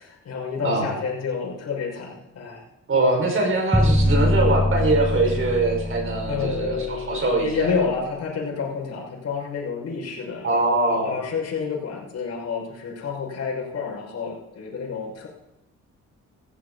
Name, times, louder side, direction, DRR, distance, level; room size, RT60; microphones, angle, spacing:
voice 1, 0.0-2.6 6.3-15.3, left 5 dB, 55° left, -1 dB, 6.0 m, -29 dB
voice 2, 2.9-7.7 10.4-11.2, right 2 dB, 45° right, 1 dB, 5.5 m, -22 dB
sound 1, 3.7-7.8, left 1 dB, ahead, 0.9 m, -23 dB
17.0 x 14.5 x 4.1 m, 0.91 s
cardioid pair, 90°, 30 cm